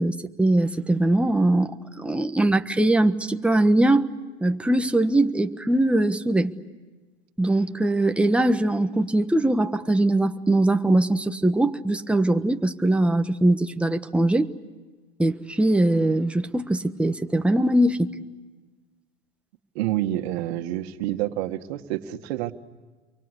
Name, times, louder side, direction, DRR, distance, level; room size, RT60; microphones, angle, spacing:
voice 1, 0.0-4.0 4.4-6.5 7.4-14.5 15.2-18.1, right 1 dB, 5° right, 7 dB, 1.3 m, -21 dB
voice 2, 19.8-22.5, right 14 dB, 70° right, 7 dB, 1.9 m, -28 dB
29.5 x 24.0 x 8.3 m, 1.3 s
supercardioid pair, 110°, 32 cm